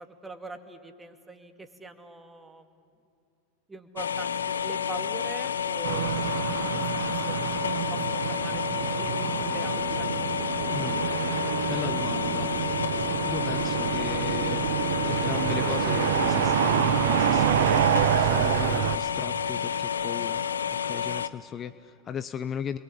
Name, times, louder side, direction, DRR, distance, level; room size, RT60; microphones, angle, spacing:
voice 1, 0.0-2.7 3.7-7.6 7.9-10.1, right 3 dB, 10° right, 7 dB, 2.5 m, -43 dB
sound 1, 4.0-21.3, left 8 dB, 85° left, 0.8 m, -30 dB
sound 2, 5.8-19.0, right 12 dB, 65° right, 1.0 m, -27 dB
voice 2, 10.7-11.4 11.7-12.5 13.3-14.7 15.0-22.8, left 8 dB, 30° left, 13 dB, 0.9 m, -37 dB
30.0 x 22.5 x 8.6 m, 2.5 s
hypercardioid pair, 95°, 0 cm